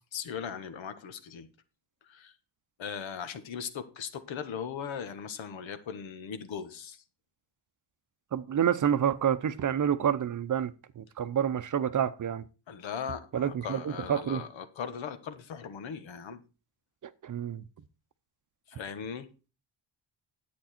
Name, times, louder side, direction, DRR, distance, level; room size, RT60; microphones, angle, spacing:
voice 1, 0.1-1.5 2.1-2.3 2.8-7.0 12.7-16.4 18.7-19.3, left 7 dB, 85° left, 1.5 m, -39 dB
voice 2, 8.3-12.5 13.3-14.4 17.0-17.6, right 9 dB, 45° right, 0.7 m, -28 dB
10.5 x 8.6 x 4.3 m
wide cardioid pair, 165°, 45 cm